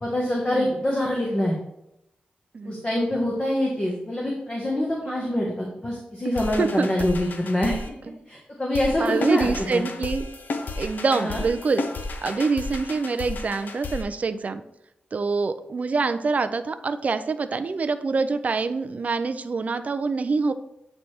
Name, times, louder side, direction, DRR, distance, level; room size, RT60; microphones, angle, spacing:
voice 1, 0.0-1.6 2.6-7.8 8.3-9.8 11.1-11.4, left 1 dB, 30° left, -3 dB, 1.3 m, -25 dB
voice 2, 6.2-6.9 8.1-8.2 9.0-10.3 10.8-11.8 12.2-14.6 15.1-20.5, right 4 dB, 45° right, 10 dB, 0.4 m, -25 dB
sound 1, 6.3-7.9 8.7-14.0, left 3 dB, 65° left, 0.7 m, -33 dB
8.4 x 3.3 x 4.3 m, 0.84 s
wide cardioid pair, 95°, 3 cm